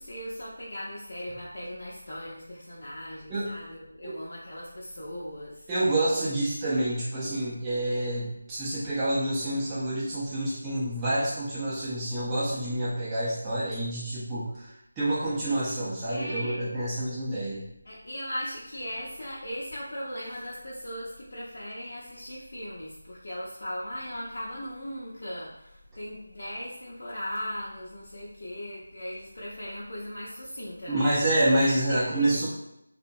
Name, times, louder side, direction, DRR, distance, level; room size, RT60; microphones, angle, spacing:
voice 1, 0.0-5.7 16.1-16.6 17.8-31.1 31.9-32.5, equal, 50° left, -7 dB, 0.5 m, -38 dB
voice 2, 5.7-17.6 30.9-32.5, right 1 dB, 15° right, -10 dB, 0.5 m, -28 dB
2.8 x 2.1 x 2.6 m, 0.82 s
figure-of-eight pair, 160°, 0 cm